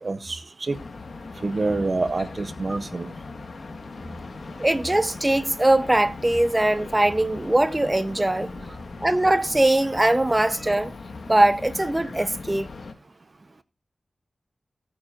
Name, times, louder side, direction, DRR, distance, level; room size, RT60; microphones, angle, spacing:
voice 1, 0.0-0.8 1.4-3.1, right 3 dB, 45° right, 0.7 m, -27 dB
sound 1, 0.7-12.9, left 3 dB, 75° left, 1.6 m, -39 dB
voice 2, 4.6-8.5 9.0-10.9 11.3-12.7, right 1 dB, 15° right, 0.9 m, -21 dB
19.5 x 8.9 x 2.5 m
wide cardioid pair, 110°, 0 cm